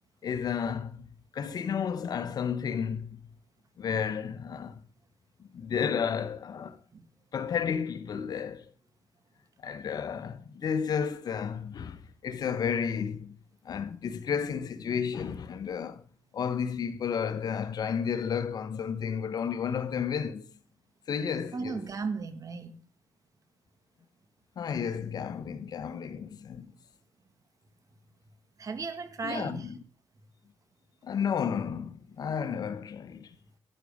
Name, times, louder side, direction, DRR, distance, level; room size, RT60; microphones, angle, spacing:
voice 1, 0.2-3.3 3.8-4.8 5.4-6.8 7.3-8.6 9.6-13.4 13.6-16.0 16.3-20.4 21.1-21.8 24.6-26.7 29.2-29.8 31.0-33.3, left 7 dB, 65° left, 1.1 m, -32 dB
voice 2, 21.5-22.8 28.6-29.7, right 4 dB, 50° right, 1.8 m, -35 dB
11.5 x 10.0 x 5.0 m
supercardioid pair, 55°, 7 cm